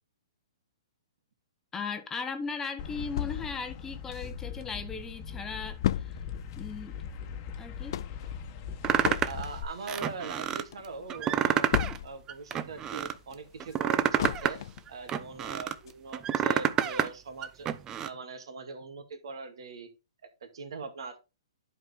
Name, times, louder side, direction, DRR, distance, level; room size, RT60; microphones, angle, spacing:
voice 1, 1.7-6.1 6.6-6.9 7.6-8.0, left 5 dB, 15° left, 1.0 m, -37 dB
sound 1, 2.8-9.6, left 7 dB, 35° left, 1.3 m, -40 dB
sound 2, 3.2-4.7 5.1-5.2 5.4-12.4 12.8-14.9 15.4-15.5 15.9-16.0, left 12 dB, 55° left, 0.3 m, -35 dB
sound 3, 8.8-9.4 9.9-10.6 11.1-12.0 12.3-13.1 13.6-15.7 16.1-17.1 17.4-18.1, right 9 dB, 20° right, 0.6 m, -28 dB
voice 2, 9.3-11.7 12.0-14.6 14.9-17.7 18.0-19.9 20.4-21.2, right 4 dB, 70° right, 2.2 m, -41 dB
11.0 x 4.9 x 3.5 m
hypercardioid pair, 135°, 3 cm